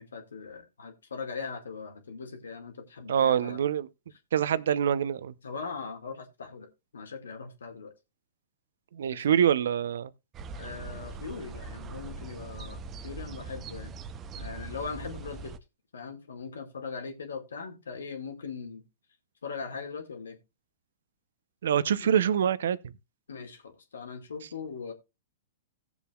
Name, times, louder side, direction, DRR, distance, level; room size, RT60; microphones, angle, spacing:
voice 1, 0.0-3.6 5.4-6.7 6.9-7.9 9.1-9.4 10.5-13.9 14.3-15.5 15.9-18.8 19.4-20.4 22.0-22.1 23.3-24.9, left 5 dB, 85° left, 2.1 m, -40 dB
voice 2, 3.1-3.9 4.3-5.3 8.9-10.1 21.6-22.8, right 9 dB, 75° right, 0.7 m, -25 dB
sound 1, 10.3-15.6, right 4 dB, 25° right, 0.8 m, -41 dB
17.5 x 7.2 x 2.4 m
hypercardioid pair, 120°, 0 cm